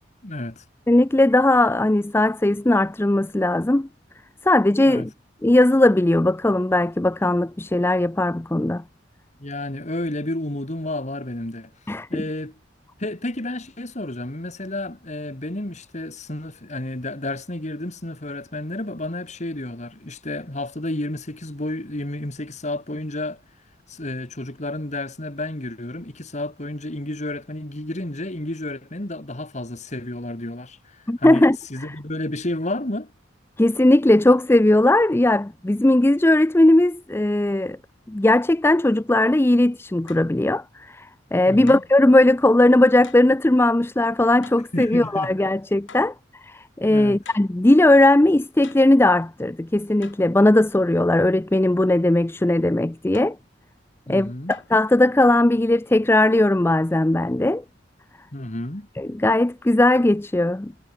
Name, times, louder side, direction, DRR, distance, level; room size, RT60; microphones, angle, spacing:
voice 1, 0.2-0.6 4.8-5.1 9.4-11.7 12.1-12.6 13.0-23.4 23.9-33.1 41.5-41.8 44.7-45.3 46.9-47.2 54.1-54.6 58.3-58.9, left 1 dB, 40° left, 2.2 m, -31 dB
voice 2, 0.9-3.9 4.4-5.1 5.4-8.8 11.9-12.2 31.1-31.6 33.6-37.8 38.1-46.1 46.4-53.4 54.1-57.6 59.0-60.7, left 1 dB, 15° left, 0.5 m, -18 dB
sound 1, 40.1-40.3 41.7-42.0 43.0-43.3 44.4-44.7 45.9-46.2 47.2-47.6 48.6-49.0 50.0-50.3 53.1-53.4 54.5-54.8, left 5 dB, 80° left, 2.4 m, -45 dB
head